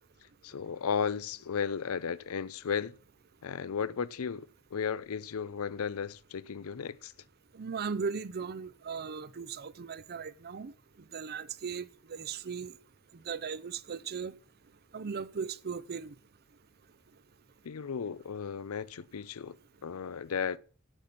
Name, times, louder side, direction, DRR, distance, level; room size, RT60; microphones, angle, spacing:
voice 1, 0.4-2.9 3.4-7.1 17.6-19.6 19.8-20.6, left 6 dB, 90° left, 0.5 m, -34 dB
voice 2, 7.5-10.7 11.1-12.8 13.3-14.3 14.9-16.1, right 5 dB, 50° right, 0.6 m, -37 dB
9.2 x 9.0 x 5.8 m
head